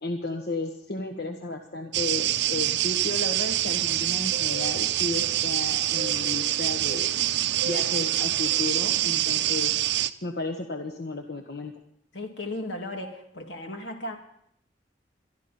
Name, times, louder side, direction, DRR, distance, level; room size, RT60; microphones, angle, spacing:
voice 1, 0.0-7.1 7.6-9.8 10.2-11.7, left 2 dB, 60° left, 4 dB, 1.3 m, -33 dB
sound 1, 1.9-10.1, right 12 dB, 75° right, 0.7 m, -25 dB
voice 2, 12.1-14.2, left 1 dB, 85° left, 3 dB, 2.6 m, -35 dB
23.0 x 13.0 x 4.3 m, 0.70 s
head